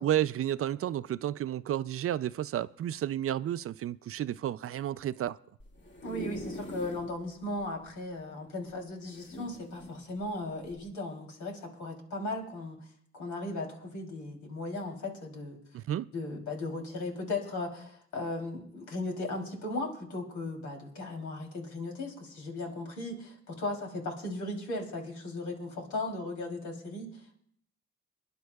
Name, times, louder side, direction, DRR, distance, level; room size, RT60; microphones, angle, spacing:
voice 1, 0.0-5.4 15.7-16.1, right 11 dB, 50° right, 0.4 m, -31 dB
sound 1, 5.6-7.1 7.6-7.7 7.9-8.0 9.1-10.0 10.7-10.9, left 1 dB, 35° left, 2.2 m, -42 dB
voice 2, 6.0-12.8 13.1-15.6 16.1-27.1, left 2 dB, 75° left, 3.2 m, -37 dB
27.5 x 11.0 x 2.3 m
cardioid pair, 90°, 30 cm